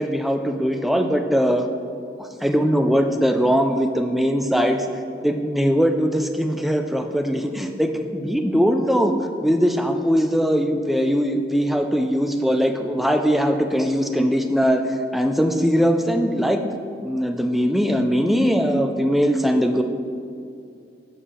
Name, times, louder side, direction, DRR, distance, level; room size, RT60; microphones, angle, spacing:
voice 1, 0.0-1.7 2.2-4.9 5.2-9.1 9.4-16.6 17.0-19.8, equal, ahead, 4 dB, 0.3 m, -21 dB
7.3 x 5.6 x 3.4 m, 2.5 s
head